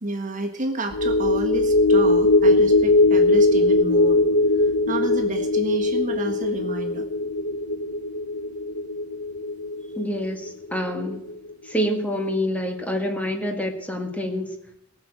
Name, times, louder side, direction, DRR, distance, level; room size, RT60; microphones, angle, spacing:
voice 1, 0.0-4.2 4.6-7.1, right 1 dB, 40° right, 4 dB, 1.6 m, -30 dB
sound 1, 0.9-11.5 11.9-12.0, left 2 dB, 75° left, 0.8 m, -20 dB
voice 2, 10.0-11.2 11.6-14.5, equal, 5° left, 3 dB, 1.8 m, -27 dB
19.5 x 6.9 x 7.6 m, 0.79 s
head